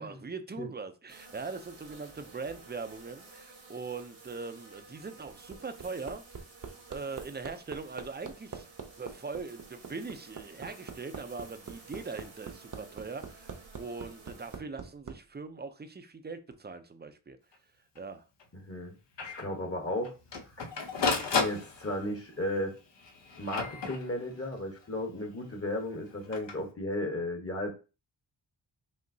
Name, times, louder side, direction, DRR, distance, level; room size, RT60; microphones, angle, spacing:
voice 1, 0.0-6.2 6.9-8.7 9.0-17.4 18.0-18.2, right 4 dB, 20° right, 0.5 m, -41 dB
sound 1, 1.1-14.6, right 4 dB, 75° right, 1.4 m, -53 dB
Hammer, 5.0-15.2 16.5-16.6, right 5 dB, 40° right, 0.8 m, -43 dB
Printer, 17.5-17.6 17.9-18.0 18.4-18.5 19.2-19.4 20.0-22.2 23.0-24.4 26.1-26.5, left 4 dB, 65° left, 0.9 m, -33 dB
voice 2, 18.6-18.9 19.2-20.1 20.6-20.7 21.2-22.7 23.4-27.7, left 1 dB, 30° left, 1.1 m, -34 dB
5.2 x 2.8 x 2.7 m
wide cardioid pair, 75°, 46 cm